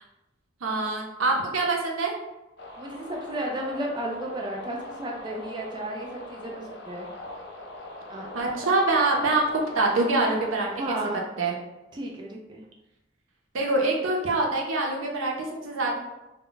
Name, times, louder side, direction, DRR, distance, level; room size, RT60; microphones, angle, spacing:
voice 1, 0.6-2.1 8.3-11.0 11.4-11.6 13.5-16.0, right 2 dB, 90° right, 0 dB, 0.6 m, -25 dB
sound 1, 2.6-10.9, left 2 dB, 55° left, 0.5 m, -42 dB
voice 2, 2.8-7.1 8.1-8.3 10.8-11.2 11.9-12.6, right 1 dB, 20° right, -1 dB, 0.3 m, -33 dB
2.1 x 2.1 x 3.8 m, 0.98 s
head